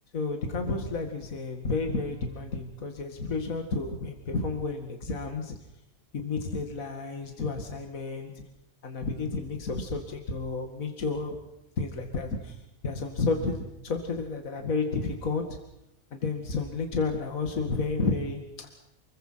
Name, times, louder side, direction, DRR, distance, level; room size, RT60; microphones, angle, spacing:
voice 1, 0.1-5.6 6.1-8.3 8.8-11.4 11.8-15.4 16.1-18.7, left 3 dB, 65° left, 4 dB, 2.6 m, -31 dB
29.5 x 22.0 x 5.8 m, 0.84 s
omnidirectional pair, 1.5 m